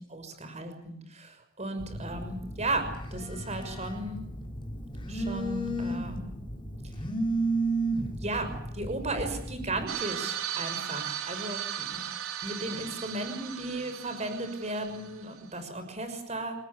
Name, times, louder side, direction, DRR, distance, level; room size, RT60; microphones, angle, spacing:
voice 1, 0.1-4.2 5.1-6.3 8.2-12.0 12.4-16.6, right 2 dB, 30° right, 8 dB, 6.0 m, -35 dB
Telephone, 1.8-9.9, right 2 dB, 25° left, 4.5 m, -33 dB
sound 1, 9.9-15.4, right 10 dB, 80° right, 2.1 m, -37 dB
27.5 x 19.5 x 8.6 m, 0.74 s
head